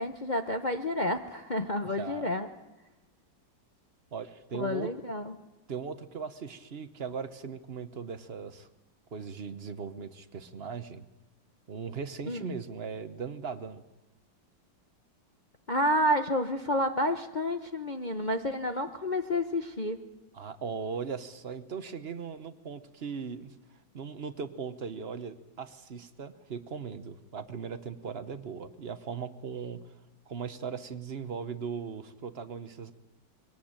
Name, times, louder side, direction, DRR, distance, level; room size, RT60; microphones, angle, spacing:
voice 1, 0.0-2.5 4.5-5.3 12.3-12.6 15.7-20.0, left 1 dB, 40° left, 5 dB, 0.7 m, -30 dB
voice 2, 1.8-2.3 4.1-4.9 5.7-8.7 9.1-11.0 11.7-13.8 20.3-23.5 23.9-29.8 30.3-32.9, right 6 dB, 40° right, 11 dB, 1.0 m, -38 dB
22.5 x 18.0 x 8.9 m, 1.0 s
omnidirectional pair, 2.1 m